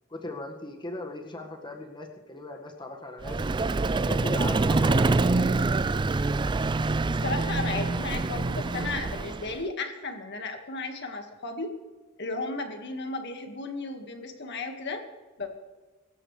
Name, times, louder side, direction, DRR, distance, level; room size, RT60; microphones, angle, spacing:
voice 1, 0.1-3.4 3.9-5.7, left 2 dB, 20° left, 2 dB, 1.7 m, -38 dB
Vehicle, 3.2-9.6, right 3 dB, 20° right, 0.3 m, -25 dB
voice 2, 7.1-11.7 12.2-15.0 15.4-15.5, left 3 dB, 55° left, 5 dB, 1.8 m, -34 dB
24.0 x 13.0 x 3.3 m, 1.3 s
head